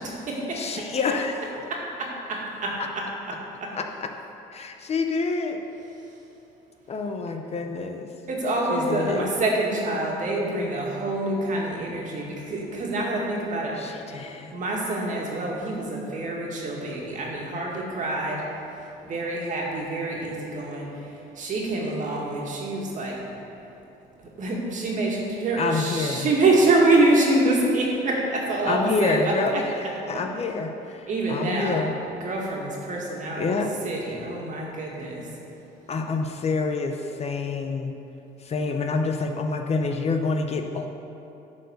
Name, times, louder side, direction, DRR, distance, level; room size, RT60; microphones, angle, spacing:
voice 1, 0.0-0.9 1.7-3.0 3.6-3.7 8.3-13.8 14.5-18.4 19.0-20.9 21.4-23.2 24.4-29.3 31.1-31.8 32.2-33.6 33.8-35.2, right 2 dB, 50° right, -3 dB, 2.1 m, -26 dB
voice 2, 0.5-1.4 2.8-2.9 3.7-4.1 4.5-5.6 6.9-8.1 8.7-9.3 13.8-14.5 25.6-26.3 28.6-32.0 33.4-33.7 35.9-37.9 38.4-40.9, left 4 dB, 40° left, 4 dB, 0.7 m, -27 dB
10.5 x 4.6 x 6.4 m, 2.9 s
cardioid pair, 110°, 17 cm